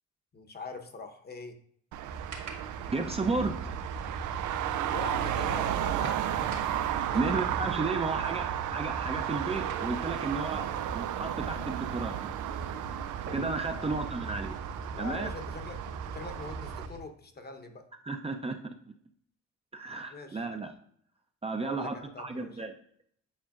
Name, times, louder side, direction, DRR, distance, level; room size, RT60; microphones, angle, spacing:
voice 1, 0.3-1.5 4.9-6.6 7.1-7.2 8.2-8.4 13.6-14.0 14.9-15.8 16.1-17.9 20.1-20.5 21.6-22.6, left 3 dB, 35° left, 6 dB, 1.0 m, -43 dB
Traffic noise roadway noise, 1.9-16.9, right 11 dB, 80° right, 0.5 m, -34 dB
sound 1, 2.1-17.0, right 3 dB, 60° right, 1.9 m, -41 dB
voice 2, 2.9-3.6 7.1-10.6 10.9-12.2 13.3-14.6 15.0-15.3 18.1-18.7 19.7-20.7 21.4-22.7, right 3 dB, 20° right, 4 dB, 0.6 m, -33 dB
8.8 x 5.0 x 2.5 m, 0.64 s
cardioid pair, 90°, 30 cm